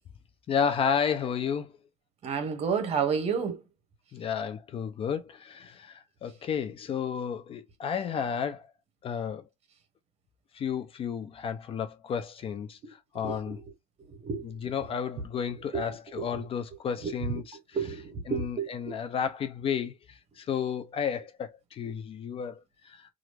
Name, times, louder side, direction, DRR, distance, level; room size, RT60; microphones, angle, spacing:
voice 1, 0.5-1.7 4.1-8.7 9.0-9.5 10.5-13.6 14.4-17.6 18.3-23.1, left 7 dB, 35° left, 0.4 m, -32 dB
voice 2, 2.2-3.6 12.8-12.9 13.2-13.6 14.2-14.4 15.7-15.8 16.1-16.2 17.0-17.1 17.7-18.9, right 6 dB, 40° right, 1.0 m, -30 dB
2.9 x 2.5 x 3.2 m
cardioid pair, 125°, 16 cm